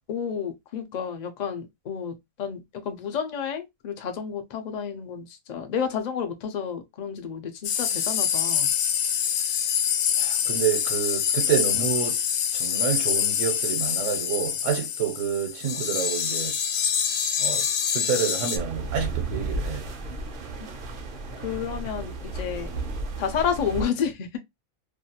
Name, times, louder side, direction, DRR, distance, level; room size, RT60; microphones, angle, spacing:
voice 1, 0.1-8.7 21.4-22.7 23.2-24.4, left 7 dB, 65° left, 0.4 m, -30 dB
sound 1, 7.6-18.6, left 8 dB, 85° left, 1.0 m, -25 dB
voice 2, 10.2-12.2 12.5-16.6 17.4-19.8, right 8 dB, 70° right, 0.9 m, -28 dB
sound 2, 18.5-23.9, right 3 dB, 55° right, 0.6 m, -33 dB
2.5 x 2.2 x 2.7 m
omnidirectional pair, 1.4 m